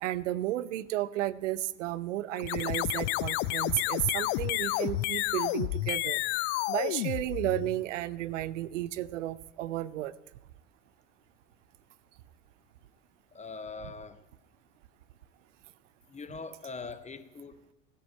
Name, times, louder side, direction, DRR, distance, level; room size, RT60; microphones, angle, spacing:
voice 1, 0.0-6.2 6.7-10.1, right 14 dB, 70° right, 17 dB, 0.7 m, -33 dB
sound 1, 2.4-7.8, left 18 dB, 55° left, 0.6 m, -31 dB
voice 2, 13.3-14.2 16.1-17.7, left 4 dB, 15° left, 11 dB, 1.2 m, -42 dB
16.0 x 10.5 x 8.6 m, 1.0 s
figure-of-eight pair, 75°, 39 cm